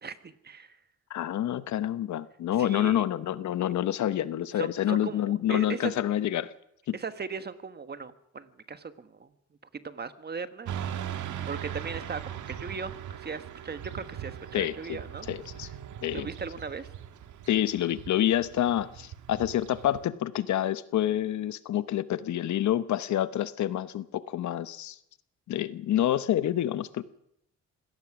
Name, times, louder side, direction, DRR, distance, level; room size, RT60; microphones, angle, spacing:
voice 1, 0.0-0.8 1.4-1.5 2.6-3.0 4.5-5.9 6.9-9.3 9.8-10.7 11.1-15.3 16.1-16.9, right 5 dB, 35° right, 10 dB, 1.4 m, -38 dB
voice 2, 1.1-6.5 6.9-7.0 14.5-15.0 15.3-15.7 16.0-16.3 17.5-25.0 25.5-27.0, left 12 dB, 70° left, 14 dB, 1.0 m, -28 dB
Motorcycle / Traffic noise roadway noise, 10.6-20.0, right 10 dB, 75° right, 1.7 m, -40 dB
25.0 x 17.5 x 6.1 m, 0.75 s
cardioid pair, 90°, 30 cm